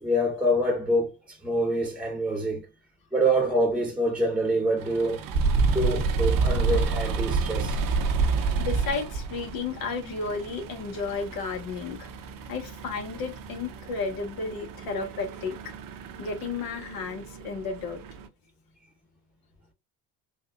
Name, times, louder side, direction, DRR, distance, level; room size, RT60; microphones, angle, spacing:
voice 1, 0.0-2.7 3.1-5.2 5.7-7.8, right 1 dB, 5° right, 1.0 m, -26 dB
sound 1, 4.8-18.3, right 4 dB, 55° right, 0.7 m, -29 dB
voice 2, 8.6-12.1 12.5-15.5 16.2-18.0, left 4 dB, 65° left, 1.2 m, -33 dB
4.0 x 2.4 x 2.3 m
supercardioid pair, 70°, 39 cm